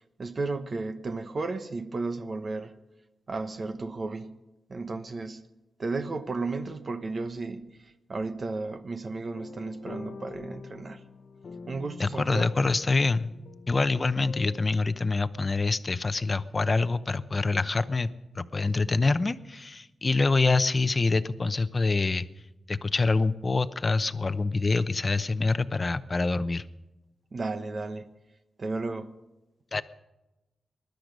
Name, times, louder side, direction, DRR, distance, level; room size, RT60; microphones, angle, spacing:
voice 1, 0.2-2.7 3.3-4.3 4.7-5.4 5.8-11.0 11.7-12.7 27.3-28.1 28.6-29.2, right 3 dB, 45° right, 1.1 m, -34 dB
sound 1, 9.3-14.8, left 4 dB, 65° left, 1.0 m, -45 dB
voice 2, 12.0-13.3 13.7-18.1 18.3-22.3 22.7-26.6 29.7-29.8, left 3 dB, 35° left, 0.8 m, -26 dB
20.5 x 12.0 x 5.3 m
wide cardioid pair, 95°, 0 cm